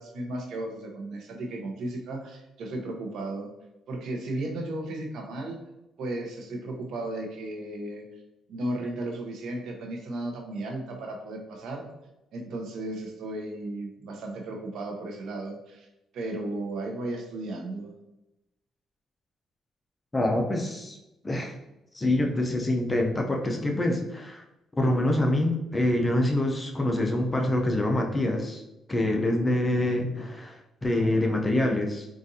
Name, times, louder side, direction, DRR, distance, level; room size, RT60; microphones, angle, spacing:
voice 1, 0.0-3.5 3.9-5.6 6.0-8.0 8.5-11.9 12.3-15.9 16.1-17.9, right 2 dB, 75° right, 2 dB, 0.7 m, -35 dB
voice 2, 20.1-21.0 21.2-21.5 21.9-24.4 24.8-28.6 28.9-32.1, left 1 dB, 20° left, 1 dB, 0.5 m, -25 dB
3.9 x 2.5 x 2.7 m, 0.93 s
cardioid pair, 90°, 0 cm